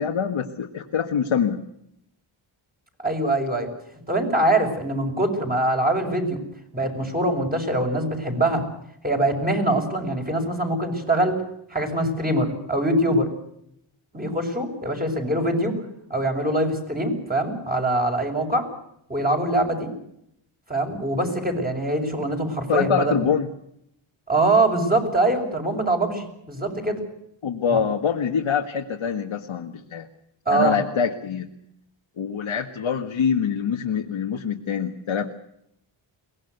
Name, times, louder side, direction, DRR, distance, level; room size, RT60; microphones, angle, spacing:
voice 1, 0.0-1.6 22.7-23.5 27.4-30.1 30.5-31.5 32.2-35.3, left 7 dB, 80° left, 2 dB, 1.8 m, -25 dB
voice 2, 3.0-3.7 4.1-6.4 6.7-8.6 9.0-11.4 11.7-13.3 14.1-15.8 16.1-18.7 19.1-19.9 20.7-23.2 24.3-27.0 27.7-27.8 30.5-30.8, right 1 dB, 20° right, 2 dB, 6.4 m, -23 dB
23.0 x 19.0 x 8.0 m, 0.75 s
wide cardioid pair, 105°, 48 cm